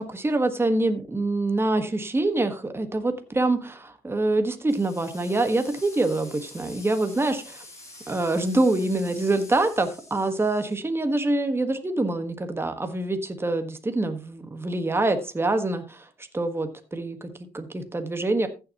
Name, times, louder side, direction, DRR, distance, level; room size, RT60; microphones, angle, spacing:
voice 1, 0.0-7.6 8.1-16.0 16.3-18.5, right 2 dB, 15° right, 7 dB, 1.4 m, -25 dB
sound 1, 4.7-10.8, left 2 dB, 20° left, 7.2 m, -46 dB
15.0 x 7.3 x 2.9 m, 0.30 s
cardioid pair, 100°, 17 cm